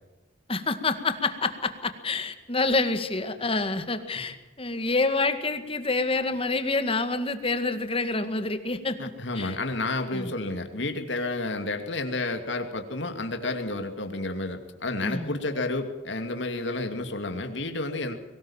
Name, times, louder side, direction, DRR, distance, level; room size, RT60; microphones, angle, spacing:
voice 1, 0.5-9.6 10.1-10.3 15.0-15.4, left 3 dB, 30° left, 9 dB, 2.0 m, -27 dB
voice 2, 9.0-18.1, left 2 dB, 75° left, 6 dB, 2.6 m, -31 dB
23.0 x 19.0 x 7.4 m, 1.1 s
head